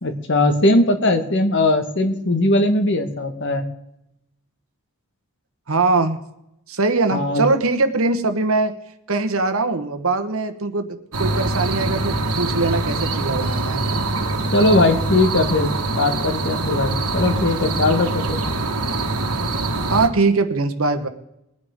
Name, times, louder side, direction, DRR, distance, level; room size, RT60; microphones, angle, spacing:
voice 1, 0.0-3.6 7.1-7.4 14.5-18.4, left 2 dB, 55° left, 7 dB, 1.4 m, -19 dB
voice 2, 5.7-6.2 6.7-8.7 9.1-13.9 19.9-21.1, right 3 dB, 65° right, 8 dB, 1.2 m, -21 dB
sound 1, 11.1-20.1, right 2 dB, 90° right, 1.5 m, -24 dB
22.0 x 9.5 x 3.6 m, 0.84 s
head